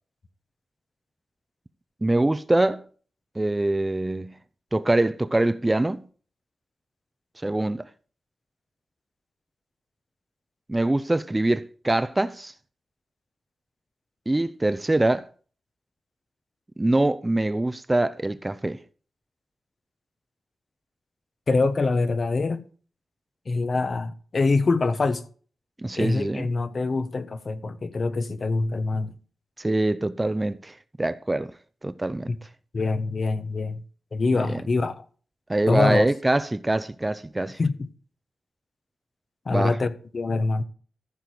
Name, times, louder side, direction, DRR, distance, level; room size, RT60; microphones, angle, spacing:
voice 1, 2.0-2.8 3.4-4.3 4.7-6.0 7.4-7.8 10.7-12.5 14.3-15.3 16.8-18.8 25.8-26.5 29.6-31.5 31.8-32.3 34.5-34.6 35.5-37.6 39.5-39.7, right 2 dB, 15° right, 0.6 m, -24 dB
voice 2, 21.5-22.6 23.5-25.2 26.0-29.1 32.3-32.4 32.7-33.8 34.1-35.0 35.7-36.1 37.6-37.9 39.4-40.6, left 3 dB, 45° left, 1.1 m, -24 dB
14.5 x 6.8 x 4.6 m
wide cardioid pair, 95°, 0 cm